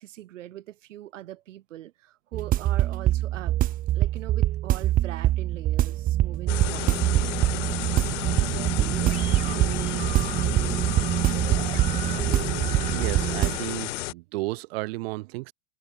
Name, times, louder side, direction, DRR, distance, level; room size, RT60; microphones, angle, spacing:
voice 1, 0.0-3.6 3.9-7.4, right 13 dB, 70° right, 5.0 m, -42 dB
sound 1, 2.3-13.6, right 14 dB, 20° right, 1.0 m, -24 dB
sound 2, 6.5-14.1, left 16 dB, 65° left, 0.9 m, -32 dB
voice 2, 12.9-15.5, right 22 dB, 50° right, 5.4 m, -33 dB
supercardioid pair, 150°, 39 cm